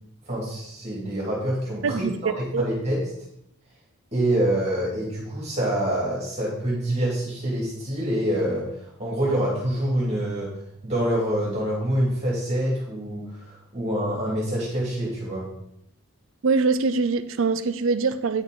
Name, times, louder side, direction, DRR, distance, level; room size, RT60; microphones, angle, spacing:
voice 1, 0.3-3.0 4.1-8.7 9.0-10.5 10.8-15.5, right 1 dB, 30° right, 2.5 m, -26 dB
voice 2, 1.8-2.7 16.4-18.4, right 4 dB, 60° right, 0.5 m, -23 dB
9.5 x 6.3 x 3.9 m
head